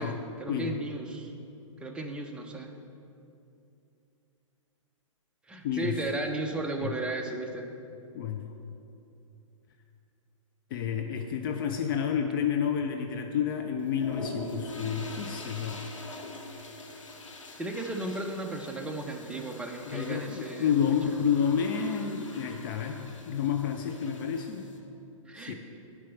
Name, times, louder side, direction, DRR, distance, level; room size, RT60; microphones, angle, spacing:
voice 1, 0.0-1.3 1.8-2.7 5.5-7.7 17.6-21.0 25.3-25.5, right 2 dB, 5° right, 2 dB, 0.6 m, -35 dB
voice 2, 5.6-6.1 6.8-6.9 8.1-8.4 10.7-15.8 19.9-23.0 23.3-24.6 25.3-25.5, left 7 dB, 40° left, 4 dB, 0.5 m, -30 dB
sound 1, 13.8-24.8, left 2 dB, 70° left, 1.1 m, -44 dB
7.4 x 4.7 x 7.0 m, 2.7 s
figure-of-eight pair, 115°, 17 cm